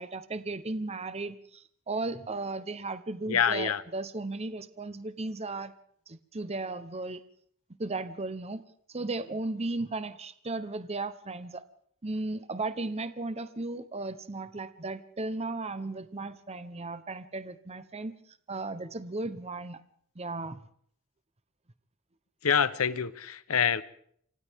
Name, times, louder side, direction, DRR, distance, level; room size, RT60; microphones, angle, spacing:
voice 1, 0.0-5.7 6.1-7.2 7.8-8.6 8.9-11.6 12.0-18.1 18.5-19.8 20.2-20.6, right 2 dB, 30° right, 0.9 m, -35 dB
voice 2, 3.3-3.8 22.4-23.8, left 7 dB, 80° left, 0.9 m, -26 dB
28.5 x 25.5 x 3.6 m
head